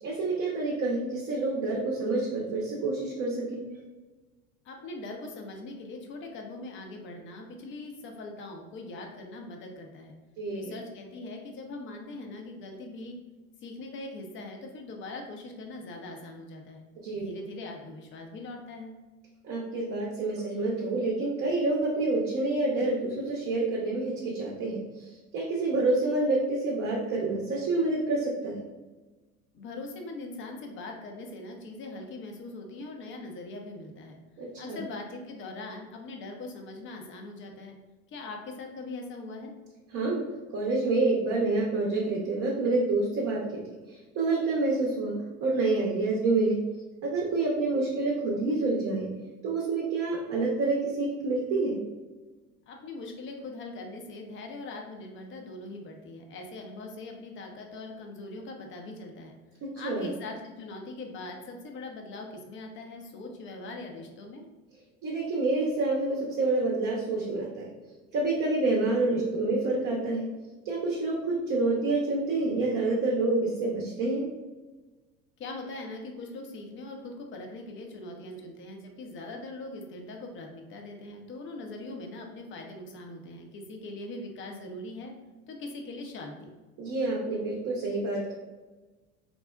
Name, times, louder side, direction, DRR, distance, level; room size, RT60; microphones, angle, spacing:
voice 1, 0.0-3.6 10.4-10.7 17.0-17.3 19.4-25.1 25.3-28.6 34.4-34.8 39.9-40.2 40.5-43.4 44.1-45.1 45.4-46.6 47.0-49.1 49.4-51.8 59.8-60.1 65.0-67.7 68.1-70.3 70.6-74.2 86.8-88.3, right 2 dB, 45° right, -3 dB, 0.7 m, -28 dB
voice 2, 4.6-10.2 10.5-13.2 13.6-16.8 17.1-18.9 29.5-34.2 34.6-37.8 38.1-39.5 52.7-59.3 59.8-64.5 75.4-85.2 85.5-86.5, left 2 dB, 30° left, 2 dB, 0.5 m, -41 dB
3.7 x 2.0 x 2.3 m, 1.2 s
hypercardioid pair, 75°, 43 cm